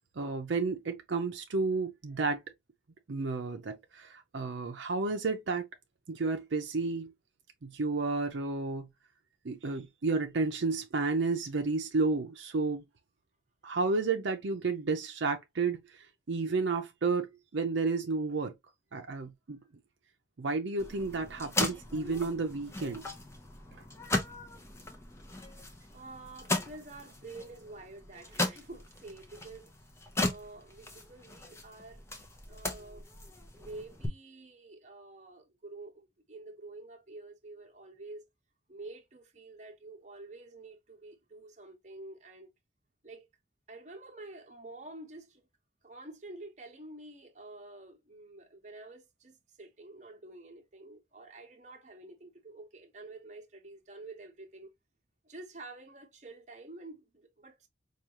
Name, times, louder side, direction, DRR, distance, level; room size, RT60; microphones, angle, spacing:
voice 1, 0.2-2.4 3.1-5.7 6.1-7.1 7.6-8.9 9.4-12.8 13.6-17.3 17.5-18.5 18.9-19.6 20.4-23.1, right 3 dB, 75° right, 0.6 m, -31 dB
post hole digging, 20.8-34.1, left 2 dB, 15° left, 0.6 m, -37 dB
voice 2, 25.9-29.7 30.2-32.0 32.5-33.1 33.5-38.3 38.7-42.5 43.0-43.3 43.7-45.4 45.8-54.7 55.2-57.7, right 2 dB, 40° right, 0.9 m, -48 dB
4.9 x 2.4 x 2.9 m
head